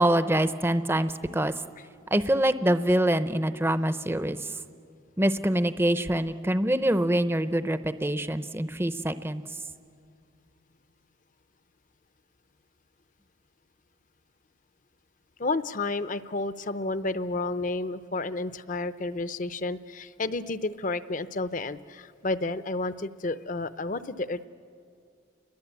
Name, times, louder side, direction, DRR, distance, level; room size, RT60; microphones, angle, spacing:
voice 1, 0.0-1.5 2.1-4.6 5.2-9.4, right 1 dB, 10° right, 12 dB, 0.6 m, -25 dB
voice 2, 15.4-24.5, left 2 dB, 40° left, 13 dB, 0.6 m, -31 dB
30.0 x 22.0 x 8.2 m, 2.4 s
head